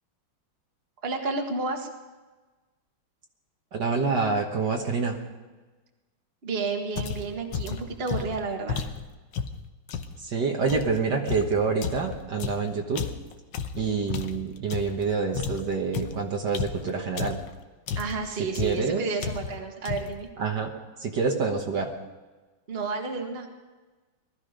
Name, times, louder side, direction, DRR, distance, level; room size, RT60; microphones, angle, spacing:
voice 1, 1.0-1.9 6.4-8.8 17.9-20.3 22.7-23.5, right 4 dB, 30° right, 3 dB, 1.7 m, -31 dB
voice 2, 3.7-5.2 10.2-13.0 13.8-17.4 18.6-19.0 20.4-21.9, right 4 dB, 60° right, 2 dB, 1.9 m, -27 dB
sound 1, 7.0-10.2 10.7-15.1 15.3-17.5 17.9-18.3 18.5-18.9 19.2-19.6 19.8-20.2, left 6 dB, 70° left, 1.6 m, -33 dB
19.5 x 13.5 x 5.2 m, 1.3 s
omnidirectional pair, 2.2 m